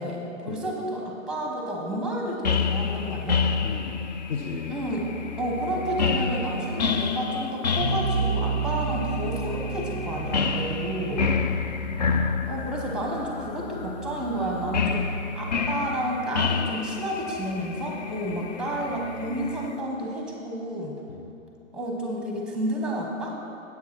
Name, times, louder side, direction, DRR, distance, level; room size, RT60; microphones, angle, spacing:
voice 1, 0.0-3.4 4.7-5.1 5.4-11.3 12.5-15.1 15.4-20.9 21.7-23.3, right 1 dB, ahead, 0 dB, 0.9 m, -31 dB
sound 1, 2.4-19.7, left 5 dB, 35° left, 0.4 m, -29 dB
voice 2, 3.6-4.8 11.2-11.5 15.1-15.2 18.3-18.5 21.1-21.3, left 5 dB, 50° left, 1 dB, 0.9 m, -36 dB
sound 2, 7.8-14.9, right 5 dB, 15° left, 1.6 m, -32 dB
9.5 x 8.1 x 6.0 m, 2.8 s
hypercardioid pair, 140°, 40 cm